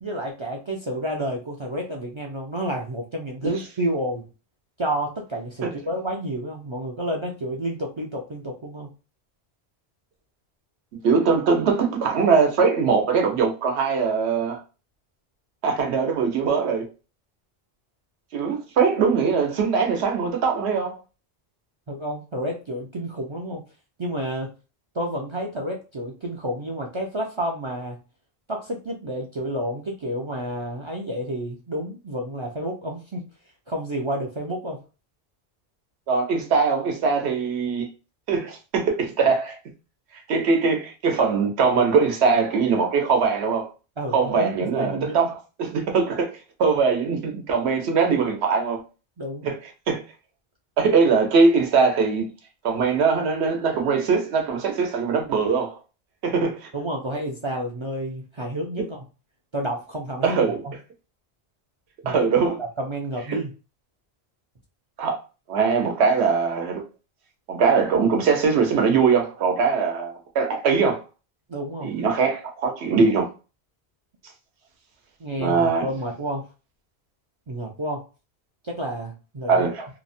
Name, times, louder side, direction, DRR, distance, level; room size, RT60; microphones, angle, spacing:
voice 1, 0.0-4.3 4.8-8.9 21.9-23.6 24.0-24.5 24.9-28.0 28.5-33.2 33.7-34.8 44.0-45.2 49.2-49.5 56.7-59.0 59.5-60.7 62.0-62.3 62.6-63.5 71.5-71.9 75.2-76.5 77.5-78.0 78.6-79.9, right 1 dB, 55° right, 0.3 m, -30 dB
voice 2, 11.0-14.6 15.6-16.9 18.3-21.0 36.1-37.9 38.3-39.6 40.1-43.7 44.1-48.8 49.4-49.6 49.9-50.0 50.8-52.3 52.6-55.8 56.2-56.7 60.2-60.6 62.1-62.6 63.3-63.4 65.0-65.2 65.5-66.8 67.5-71.0 71.8-73.3 75.4-75.9 79.5-79.9, right 5 dB, 85° right, 1.0 m, -21 dB
2.9 x 2.0 x 2.5 m
omnidirectional pair, 1.1 m